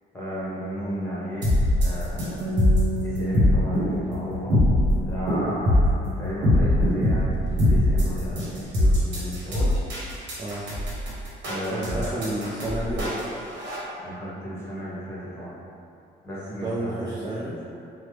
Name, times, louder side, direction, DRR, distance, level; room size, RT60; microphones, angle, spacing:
voice 1, 0.1-2.7 3.0-4.6 5.0-9.7 11.5-12.3 14.0-15.5 16.2-17.1, equal, 10° left, -9 dB, 1.1 m, -34 dB
sound 1, 1.4-13.8, left 1 dB, 65° right, 1.0 m, -22 dB
Bass guitar, 2.4-8.7, right 1 dB, 85° right, 0.5 m, -34 dB
voice 2, 11.7-13.2 16.5-17.6, right 1 dB, 20° right, -8 dB, 0.4 m, -31 dB
3.1 x 2.1 x 3.2 m, 2.7 s
cardioid pair, 90°, 20 cm